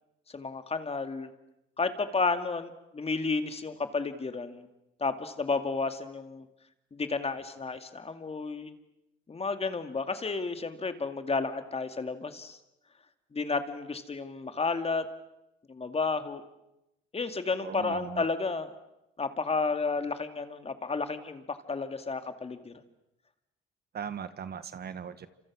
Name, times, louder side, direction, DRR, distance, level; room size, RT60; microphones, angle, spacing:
voice 1, 0.3-1.3 1.8-4.7 5.0-6.5 6.9-8.7 9.3-12.6 13.3-15.0 15.7-16.4 17.1-18.7 19.2-22.7, left 4 dB, 30° left, 8 dB, 2.3 m, -32 dB
voice 2, 17.6-18.2 23.9-25.3, right 7 dB, 55° right, 12 dB, 1.6 m, -39 dB
29.0 x 27.0 x 6.3 m, 0.88 s
cardioid pair, 90°, 20 cm